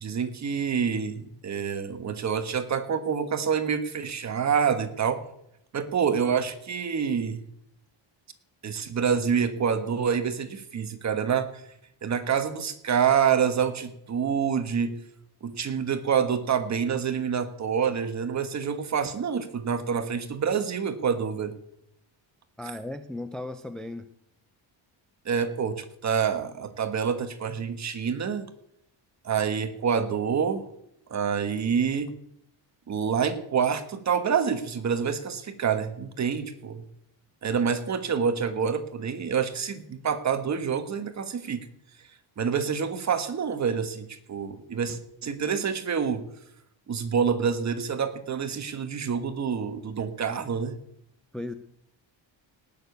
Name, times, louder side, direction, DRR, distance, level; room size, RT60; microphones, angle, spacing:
voice 1, 0.0-5.2 5.7-7.4 8.6-11.6 12.0-15.0 15.4-21.6 25.2-28.5 29.2-30.6 31.1-32.1 32.9-36.8 37.4-41.7 42.4-46.2 46.9-50.8, right 7 dB, 35° right, 9 dB, 1.4 m, -27 dB
voice 2, 22.6-24.0 51.3-51.5, left 2 dB, ahead, 8 dB, 0.5 m, -36 dB
18.5 x 6.9 x 8.0 m, 0.76 s
cardioid pair, 160°, 46 cm